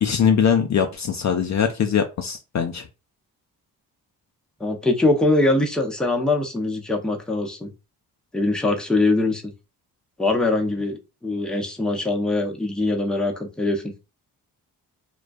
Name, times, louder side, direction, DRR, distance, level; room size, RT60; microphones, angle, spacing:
voice 1, 0.0-2.9, left 7 dB, 45° left, 5 dB, 0.5 m, -21 dB
voice 2, 4.6-7.7 8.3-9.5 10.2-13.9, left 2 dB, ahead, 2 dB, 0.7 m, -22 dB
2.2 x 2.2 x 2.5 m, 0.28 s
supercardioid pair, 55°, 40 cm